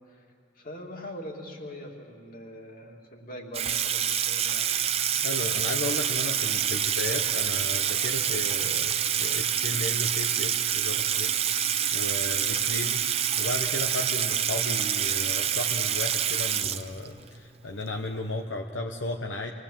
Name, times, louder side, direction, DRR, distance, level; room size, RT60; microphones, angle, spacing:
voice 1, 0.5-4.7, left 1 dB, 50° left, 0 dB, 2.6 m, -42 dB
Water tap faucet / Sink (filling or washing), 3.5-17.3, right 9 dB, 35° right, 0.6 m, -27 dB
voice 2, 5.2-11.3 11.9-19.5, left 2 dB, 80° left, 2 dB, 1.0 m, -34 dB
26.0 x 19.0 x 7.4 m, 2.4 s
head